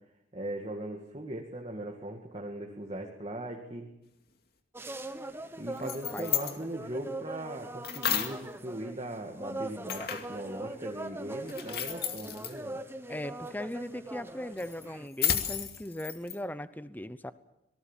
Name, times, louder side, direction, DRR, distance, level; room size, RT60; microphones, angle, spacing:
voice 1, 0.3-3.9 5.6-12.8, right 1 dB, 35° right, 0 dB, 2.1 m, -39 dB
sound 1, 4.7-15.1, right 2 dB, 15° right, 1.3 m, -42 dB
sound 2, 5.7-6.6 7.8-8.4 9.9-10.4 11.5-12.5 14.6-16.4, left 9 dB, 60° left, 2.3 m, -32 dB
voice 2, 5.8-6.3 10.0-10.1 13.1-17.3, left 1 dB, 10° left, 13 dB, 0.8 m, -39 dB
26.0 x 19.0 x 7.4 m, 0.87 s
head